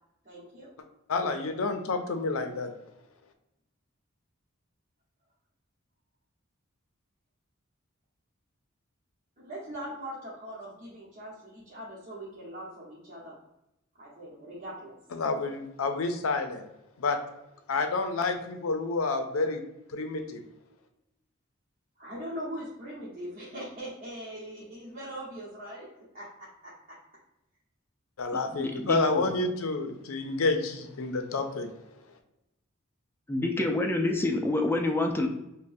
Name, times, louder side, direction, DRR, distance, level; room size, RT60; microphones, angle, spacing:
voice 1, 0.2-0.7 9.4-13.4 13.9-15.0 22.0-25.9 26.1-26.7, equal, 35° right, -8 dB, 1.0 m, -41 dB
voice 2, 1.1-2.7 15.1-16.7 17.0-17.2 17.7-19.6 19.9-20.4 28.2-31.7, left 3 dB, 90° left, 7 dB, 0.5 m, -29 dB
voice 3, 28.5-29.3 33.3-35.3, left 2 dB, 10° left, 3 dB, 0.4 m, -27 dB
5.2 x 2.2 x 2.6 m, 0.89 s
head